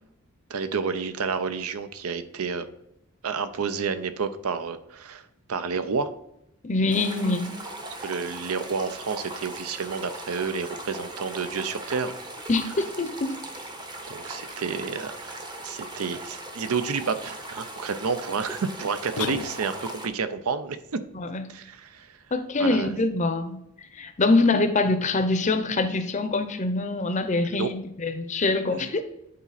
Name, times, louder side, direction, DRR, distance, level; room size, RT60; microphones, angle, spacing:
voice 1, 0.5-2.7 3.2-5.2 5.5-6.1 8.0-12.1 14.1-15.4 15.6-21.0 21.5-22.1 22.6-22.9 27.4-27.7 28.7-28.9, right 5 dB, 80° right, 12 dB, 0.6 m, -30 dB
voice 2, 6.6-7.5 12.5-13.4 21.1-21.5 22.3-23.6 23.9-29.0, left 2 dB, 35° left, 9 dB, 0.6 m, -24 dB
sound 1, 6.9-20.1, right 1 dB, 20° right, 0.7 m, -39 dB
sound 2, 19.2-20.1, left 8 dB, 80° left, 0.4 m, -33 dB
8.6 x 4.0 x 4.1 m, 0.83 s
head